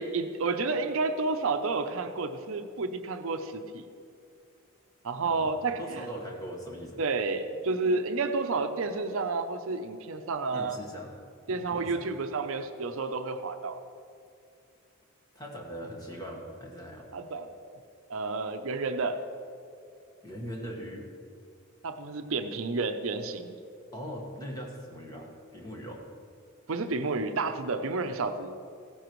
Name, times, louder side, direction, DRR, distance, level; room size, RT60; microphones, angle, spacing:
voice 1, 0.0-3.9 5.0-6.1 7.0-10.8 11.5-13.8 17.1-17.8 18.1-19.2 21.8-23.5 26.7-28.5, right 3 dB, 70° right, 7 dB, 0.6 m, -30 dB
voice 2, 5.8-7.0 10.5-11.2 11.5-12.0 15.3-17.1 20.2-21.1 23.9-26.0, equal, 15° left, -1 dB, 1.4 m, -40 dB
16.0 x 10.0 x 3.1 m, 2.4 s
head